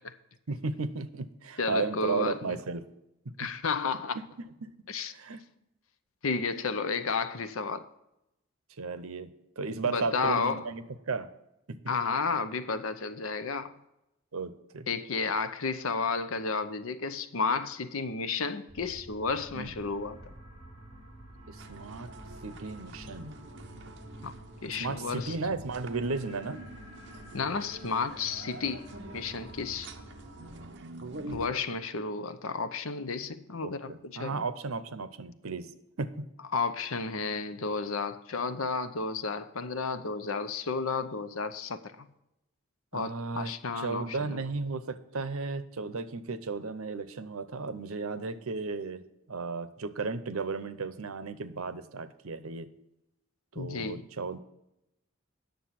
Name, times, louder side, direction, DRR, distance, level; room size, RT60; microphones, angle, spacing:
voice 1, 0.5-2.9 4.6-4.7 5.1-5.4 8.8-9.3 9.6-11.3 11.7-11.8 14.3-14.9 19.5-19.7 21.5-22.1 22.4-23.4 24.7-26.6 33.6-35.7 36.0-36.2 42.9-49.0 49.3-52.7 53.5-54.4, right 4 dB, 85° right, 0.8 m, -34 dB
voice 2, 1.6-2.6 3.4-4.2 4.9-5.1 6.2-7.9 9.8-10.7 11.9-13.7 14.9-20.2 24.2-24.3 24.6-25.4 27.3-29.9 31.3-34.4 36.5-42.1 42.9-44.4 53.6-54.1, left 4 dB, 80° left, 0.7 m, -32 dB
sound 1, 18.7-30.7, equal, 25° right, 3.2 m, -49 dB
sound 2, 21.6-31.5, right 2 dB, 55° right, 0.8 m, -46 dB
9.6 x 6.8 x 5.8 m
head